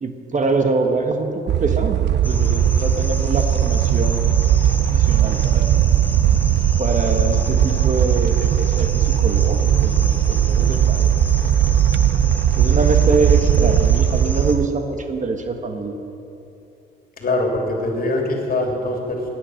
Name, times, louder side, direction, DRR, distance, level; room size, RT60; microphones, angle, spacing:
voice 1, 0.0-5.8 6.8-11.1 11.4-11.8 12.6-16.0, right 3 dB, 40° right, 5 dB, 1.3 m, -24 dB
sound 1, 1.5-14.7, right 11 dB, 60° right, 0.4 m, -18 dB
sound 2, 2.2-14.6, left 1 dB, 10° left, 1.7 m, -29 dB
voice 2, 17.2-19.3, left 2 dB, 50° left, 1 dB, 3.0 m, -23 dB
18.5 x 9.5 x 6.4 m, 2.9 s
cardioid pair, 90°, 20 cm